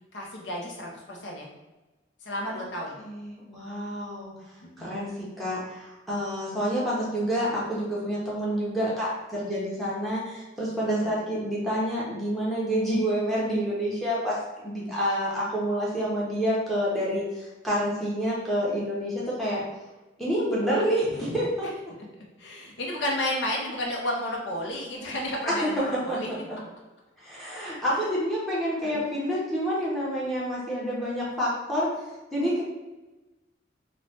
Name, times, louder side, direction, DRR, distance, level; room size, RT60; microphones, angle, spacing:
voice 1, 0.1-1.5 2.2-2.9 4.8-4.9 10.8-11.1 22.4-26.3 27.9-28.0 28.9-29.0, left 1 dB, 70° left, -2 dB, 0.6 m, -32 dB
voice 2, 3.0-4.3 4.8-14.4 14.6-19.6 20.2-21.8 26.1-26.2 26.5-26.6 27.2-31.9 32.3-32.6, equal, ahead, -7 dB, 0.7 m, -28 dB
3.1 x 2.1 x 2.7 m, 1.1 s
head